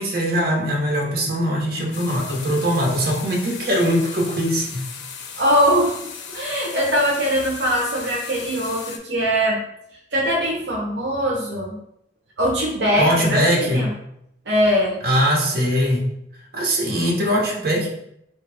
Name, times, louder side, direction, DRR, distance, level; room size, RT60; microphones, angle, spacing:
voice 1, 0.0-4.8 13.0-13.8 15.0-16.1 16.5-17.9, equal, 60° right, -1 dB, 0.9 m, -21 dB
sound 1, 1.9-9.0, left 6 dB, 80° left, 0.4 m, -37 dB
voice 2, 5.4-5.9 6.3-9.6 10.1-11.8 12.4-13.4 13.7-13.9 14.5-15.0, equal, 80° right, -2 dB, 0.6 m, -21 dB
4.0 x 2.3 x 3.3 m, 0.76 s
head